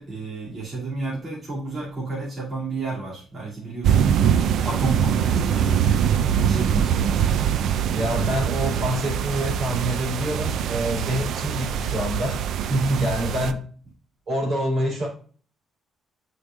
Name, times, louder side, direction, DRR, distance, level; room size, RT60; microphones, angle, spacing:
voice 1, 0.0-4.2 4.6-6.1 6.4-7.0 12.6-13.2, right 2 dB, 35° right, -7 dB, 2.7 m, -30 dB
sound 1, 3.8-13.5, right 8 dB, 75° right, 0.4 m, -23 dB
voice 2, 7.9-12.4 13.0-13.6 14.3-15.1, equal, 50° right, -1 dB, 3.5 m, -26 dB
8.5 x 4.8 x 2.5 m, 0.42 s
cardioid pair, 115°, 0 cm